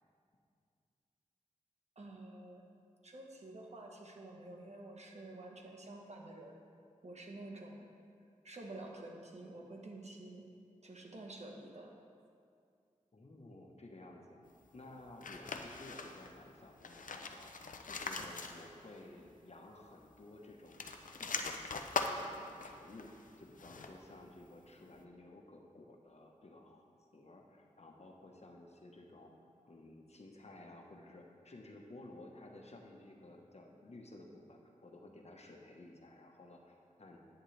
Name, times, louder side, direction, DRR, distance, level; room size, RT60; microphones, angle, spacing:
voice 1, 2.0-2.6 3.0-6.5 7.0-7.9 8.4-10.4 10.8-11.9, right 2 dB, 55° right, 0 dB, 1.4 m, -49 dB
voice 2, 13.1-14.4 14.7-17.5 17.8-20.8 21.2-23.1 23.4-26.8 27.1-29.3 29.6-37.2, left 2 dB, 55° left, 1 dB, 1.3 m, -54 dB
sound 1, 15.2-16.4 16.7-19.0 19.3-19.4 20.6-24.1, left 4 dB, 80° left, 0.6 m, -42 dB
10.5 x 9.4 x 3.4 m, 2.3 s
cardioid pair, 50°, 13 cm